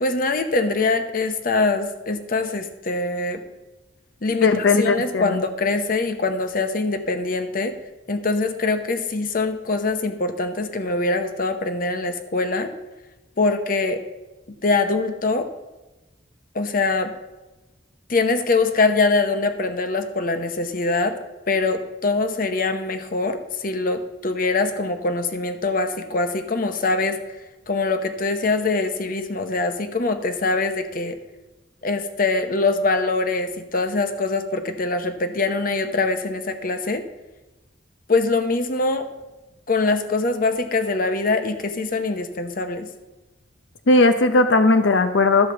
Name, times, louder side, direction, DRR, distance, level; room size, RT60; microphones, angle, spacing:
voice 1, 0.0-3.4 4.2-7.8 8.1-12.7 13.4-14.0 14.6-15.5 16.5-17.1 18.1-21.2 21.5-27.2 27.7-31.2 31.8-37.0 38.1-39.0 39.7-42.9, left 3 dB, 50° left, 8 dB, 0.8 m, -23 dB
voice 2, 4.4-5.4 43.9-45.5, left 2 dB, 85° left, 9 dB, 0.6 m, -17 dB
12.5 x 4.8 x 6.9 m, 1.1 s
head